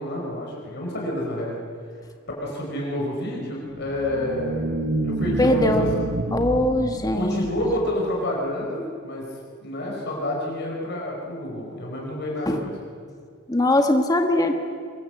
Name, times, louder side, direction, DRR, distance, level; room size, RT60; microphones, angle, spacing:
voice 1, 0.0-1.6 2.4-4.7 5.0-5.9 7.1-12.7, left 1 dB, 55° left, -2 dB, 5.2 m, -29 dB
sound 1, 3.7-8.2, right 2 dB, 80° right, 1.2 m, -29 dB
voice 2, 5.4-6.0 6.3-7.4 12.5-12.6 13.5-14.5, left 1 dB, 20° left, 4 dB, 1.6 m, -21 dB
24.0 x 21.0 x 8.1 m, 2.1 s
head